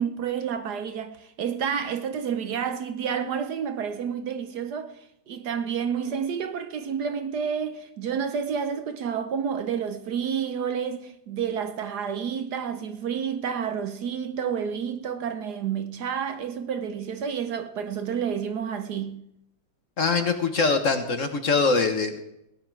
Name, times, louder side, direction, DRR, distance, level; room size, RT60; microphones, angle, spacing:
voice 1, 0.0-4.9 5.3-19.2, right 7 dB, 65° right, 1.2 m, -30 dB
voice 2, 20.0-22.2, left 4 dB, 45° left, 1.4 m, -23 dB
18.0 x 10.0 x 4.7 m
omnidirectional pair, 2.1 m